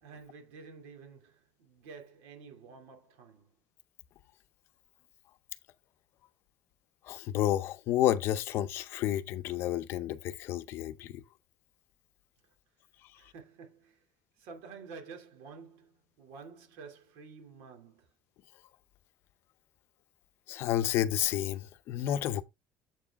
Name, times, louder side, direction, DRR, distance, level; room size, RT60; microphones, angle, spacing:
voice 1, 0.0-3.5 13.1-14.1 14.4-18.1, right 5 dB, 85° right, 2.6 m, -50 dB
voice 2, 7.1-11.2 20.5-22.4, left 12 dB, 55° left, 0.6 m, -30 dB
7.7 x 4.8 x 3.5 m
cardioid pair, 155°, 5 cm